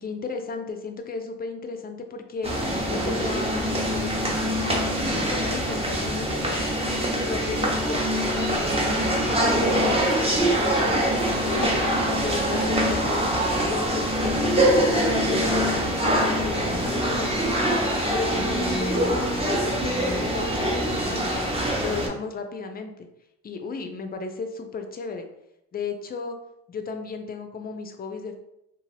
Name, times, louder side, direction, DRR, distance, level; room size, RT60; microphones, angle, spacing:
voice 1, 0.0-2.5 2.9-6.6 7.0-8.5 8.8-11.8 12.1-13.3 13.7-17.7 18.1-21.5 21.8-23.1 23.4-25.2 25.7-26.4 26.7-28.4, left 4 dB, 30° left, 6 dB, 0.4 m, -34 dB
sound 1, 2.4-22.1, right 1 dB, 20° right, 0.7 m, -24 dB
2.5 x 2.4 x 3.2 m, 0.83 s
cardioid pair, 90°, 30 cm